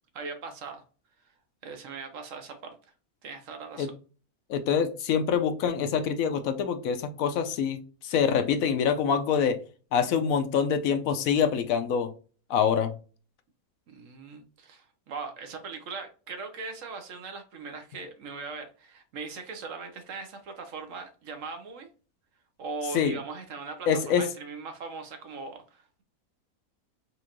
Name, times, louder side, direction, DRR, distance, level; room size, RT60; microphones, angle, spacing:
voice 1, 0.1-0.8 1.6-2.8 3.2-3.9 13.9-21.9 22.6-26.0, right 4 dB, 65° right, 1.1 m, -40 dB
voice 2, 4.5-9.6 9.9-12.1 12.5-12.9 22.9-23.1 23.9-24.3, left 7 dB, 70° left, 0.9 m, -25 dB
4.3 x 2.5 x 2.9 m
omnidirectional pair, 1.6 m